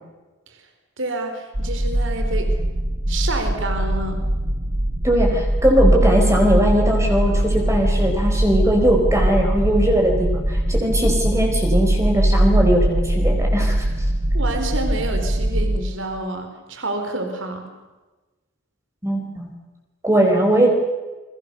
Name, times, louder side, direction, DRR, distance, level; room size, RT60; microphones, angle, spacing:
voice 1, 1.0-2.6 3.1-4.3 14.3-17.7, right 2 dB, 65° right, 5 dB, 4.2 m, -28 dB
sound 1, 1.5-15.8, right 1 dB, 35° right, 1.8 m, -21 dB
voice 2, 5.0-13.8 19.0-19.5 20.0-20.7, right 1 dB, 15° right, 1 dB, 4.5 m, -19 dB
29.5 x 24.5 x 6.8 m, 1.2 s
head